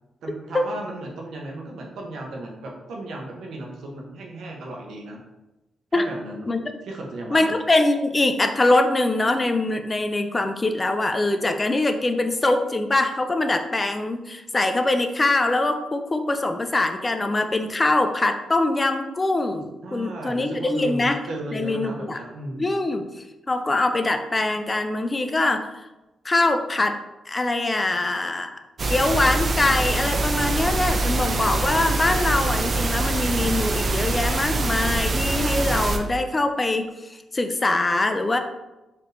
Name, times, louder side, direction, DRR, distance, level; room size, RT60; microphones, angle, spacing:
voice 1, 0.2-5.2 5.9-6.5 6.8-7.5 19.8-22.7, right 1 dB, 80° right, 0 dB, 0.8 m, -35 dB
voice 2, 7.3-21.2 21.5-22.2 22.6-25.9 26.2-27.0 27.3-38.4, left 2 dB, 25° left, 7 dB, 0.4 m, -23 dB
sound 1, 28.8-36.0, right 2 dB, 45° right, 0.4 m, -24 dB
4.4 x 3.2 x 2.6 m, 1.0 s
cardioid pair, 80°, 0 cm